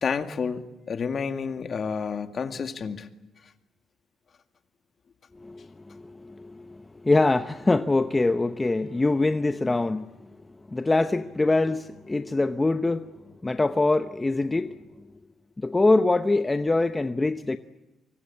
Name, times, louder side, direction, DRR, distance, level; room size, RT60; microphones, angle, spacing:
voice 1, 0.0-3.1, left 5 dB, 50° left, 2.1 m, -30 dB
voice 2, 5.4-10.1 10.7-13.1 13.4-14.7 15.6-17.6, left 2 dB, 20° left, 0.9 m, -24 dB
25.0 x 24.0 x 8.6 m
cardioid pair, 90°, 0 cm